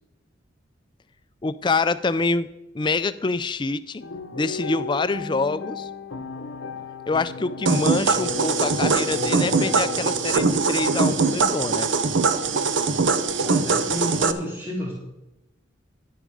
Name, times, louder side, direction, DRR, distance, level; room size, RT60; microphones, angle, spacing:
voice 1, 1.4-2.5 2.7-4.0 4.3-5.9 7.1-11.9, left 3 dB, 25° left, 14 dB, 0.4 m, -26 dB
sound 1, 4.0-10.7, left 4 dB, 85° left, 0.8 m, -34 dB
sound 2, 7.7-14.3, right 4 dB, 70° right, 0.6 m, -22 dB
voice 2, 13.4-14.9, equal, 10° right, -2 dB, 1.6 m, -30 dB
10.0 x 9.0 x 4.9 m, 0.95 s
head